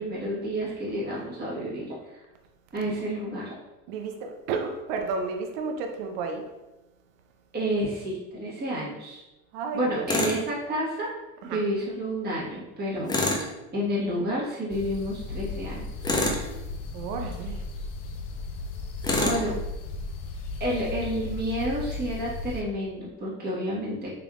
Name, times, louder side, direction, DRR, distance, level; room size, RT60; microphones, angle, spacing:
voice 1, 0.0-1.9 2.7-3.6 7.5-9.2 9.7-11.1 11.5-13.2 13.7-15.8 19.1-19.5 20.6-24.1, equal, 20° right, -7 dB, 1.3 m, -30 dB
voice 2, 3.9-6.4 9.5-10.1 11.4-11.6 13.0-13.1 16.9-17.6 19.2-19.6, right 4 dB, 65° right, 4 dB, 0.7 m, -32 dB
Tools, 10.1-10.4 13.1-13.5 16.0-16.5 19.0-19.4, left 2 dB, 10° left, 0.4 m, -25 dB
sound 1, 14.7-22.6, left 3 dB, 65° left, 0.7 m, -35 dB
3.5 x 3.4 x 2.3 m, 1.0 s
hypercardioid pair, 70°, 45 cm